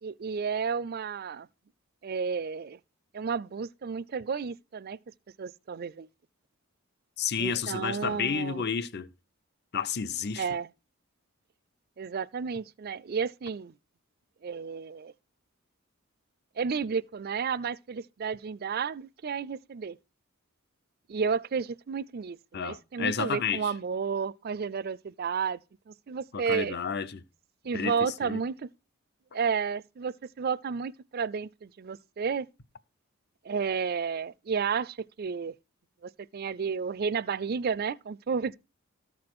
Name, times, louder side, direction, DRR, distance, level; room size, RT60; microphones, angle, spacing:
voice 1, 0.0-1.5 2.0-2.8 3.1-5.0 5.4-6.1 7.4-8.6 10.4-10.7 12.0-13.7 14.4-15.1 16.6-20.0 21.1-25.6 25.9-26.7 27.6-28.7 29.3-32.5 33.4-35.5 36.0-38.5, right 6 dB, 45° right, 0.4 m, -32 dB
voice 2, 7.2-9.1 9.7-10.4 22.5-23.7 26.3-27.2 27.7-28.4, left 6 dB, 50° left, 0.7 m, -31 dB
14.0 x 4.8 x 6.0 m
head